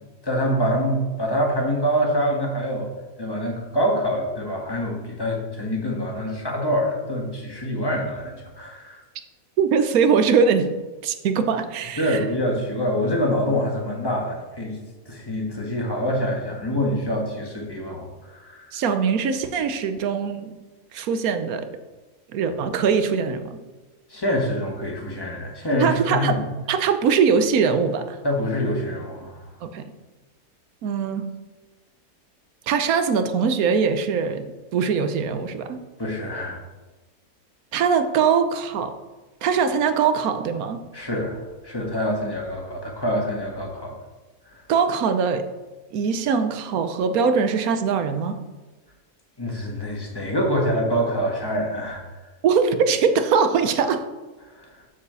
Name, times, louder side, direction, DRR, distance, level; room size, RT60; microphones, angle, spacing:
voice 1, 0.2-2.9 3.2-9.0 12.0-14.8 15.1-18.7 24.1-26.4 28.2-29.5 36.0-36.6 40.9-43.9 44.5-44.6 49.4-52.0 54.5-54.8, equal, 15° left, -1 dB, 1.6 m, -25 dB
voice 2, 9.6-10.7 11.0-12.2 18.7-20.6 20.9-21.7 22.3-23.6 25.8-26.4 26.7-28.2 29.6-29.8 30.8-31.2 32.7-34.5 34.7-35.8 37.7-38.9 39.4-40.8 44.7-45.4 45.9-48.4 52.4-54.0, right 6 dB, 65° right, 9 dB, 1.1 m, -21 dB
7.4 x 4.9 x 6.9 m, 1.2 s
omnidirectional pair, 1.7 m